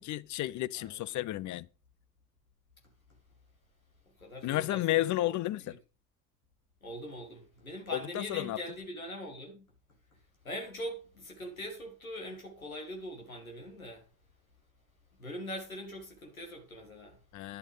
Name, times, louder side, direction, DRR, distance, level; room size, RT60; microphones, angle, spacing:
voice 1, 0.0-1.7 4.4-5.8 7.9-8.6 17.3-17.6, left 15 dB, 45° left, 0.7 m, -32 dB
voice 2, 0.8-1.2 4.2-5.4 5.7-5.8 6.8-9.7 10.1-10.2 10.4-14.1 15.2-17.2, equal, 90° left, 2.1 m, -42 dB
11.0 x 7.8 x 5.0 m
figure-of-eight pair, 50°, 41 cm